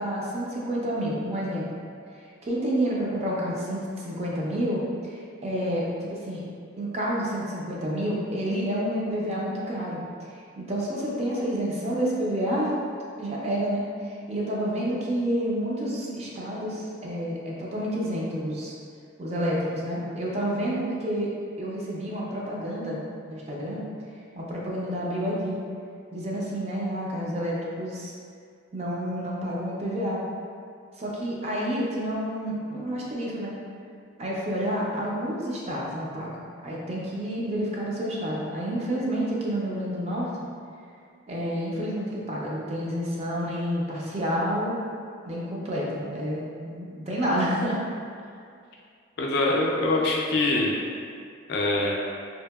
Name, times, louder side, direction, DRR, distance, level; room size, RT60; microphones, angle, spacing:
voice 1, 0.0-1.7 2.2-6.4 6.8-10.0 10.3-12.7 13.2-18.7 19.2-21.3 21.6-23.0 23.3-23.8 24.3-25.6 26.1-28.1 28.7-30.2 31.0-33.6 34.2-40.3 41.3-44.8 45.2-47.8, equal, 30° right, -5 dB, 0.4 m, -29 dB
voice 2, 49.2-50.7 51.5-51.9, left 2 dB, 55° left, -2 dB, 0.3 m, -24 dB
2.7 x 2.6 x 2.3 m, 2.3 s
head